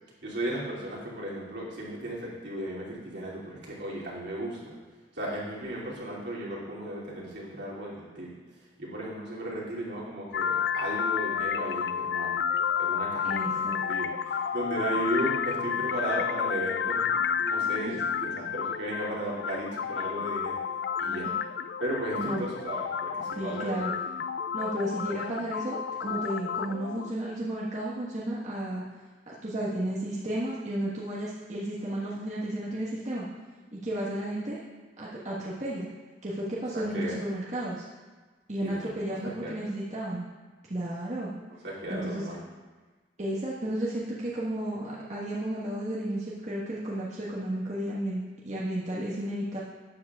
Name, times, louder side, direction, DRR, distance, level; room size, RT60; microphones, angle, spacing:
voice 1, 0.2-4.8 5.1-8.3 8.8-12.4 12.8-20.6 21.0-21.3 21.8-23.8 36.7-37.2 38.6-38.9 39.2-39.5 41.6-42.4, right 1 dB, 75° right, -6 dB, 2.7 m, -35 dB
sound 1, 10.3-27.1, left 7 dB, 65° left, 0.3 m, -31 dB
voice 2, 13.2-13.8 17.9-18.0 22.2-22.4 23.4-23.9 24.5-28.8 29.3-33.3 33.7-34.6 35.0-35.9 36.2-37.8 38.5-40.2 40.7-41.3 41.9-42.2 43.2-49.6, right 1 dB, 40° right, -8 dB, 1.4 m, -33 dB
12.5 x 9.3 x 2.4 m, 1.4 s
head